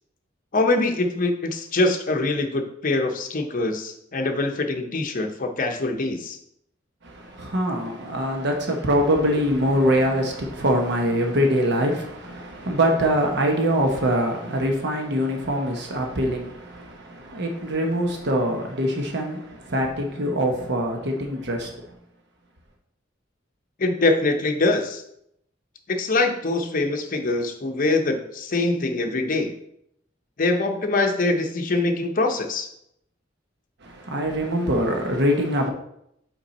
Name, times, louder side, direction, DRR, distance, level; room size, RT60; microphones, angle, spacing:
voice 1, 0.5-6.4 23.8-25.0 25.9-29.5 30.4-32.7, left 2 dB, 45° left, 0.8 m, -23 dB
voice 2, 7.0-21.8 33.8-35.7, equal, 60° right, 0.9 m, -23 dB
5.6 x 4.6 x 4.2 m
head